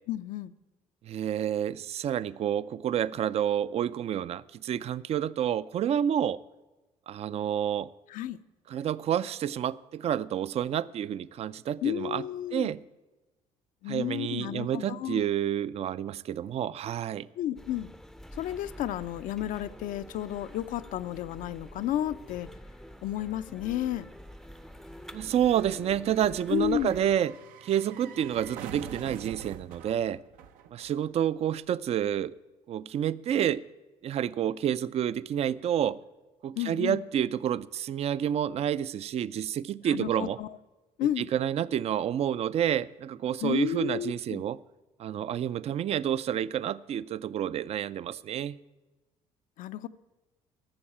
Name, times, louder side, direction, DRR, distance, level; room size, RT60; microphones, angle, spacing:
voice 1, 0.1-0.5 8.1-8.4 11.8-12.7 13.8-15.2 17.4-17.9 18.3-22.5 23.0-24.1 26.5-26.9 36.6-37.0 39.8-40.6 41.0-41.3 43.4-44.4 49.6-49.9, left 12 dB, 70° left, 0.6 m, -32 dB
voice 2, 1.0-6.4 7.1-7.9 8.7-12.2 12.5-12.8 13.9-17.3 25.1-27.3 27.6-30.2 30.7-32.4 32.7-33.6 34.0-36.0 36.4-40.4 41.0-44.6 45.0-48.6, right 10 dB, 50° right, 0.4 m, -29 dB
sound 1, 17.6-27.2, equal, ahead, 0.5 m, -47 dB
sound 2, 20.6-20.7 20.9-31.3 31.6-31.7, right 8 dB, 85° right, 0.8 m, -47 dB
13.0 x 7.1 x 8.7 m
cardioid pair, 95°, 14 cm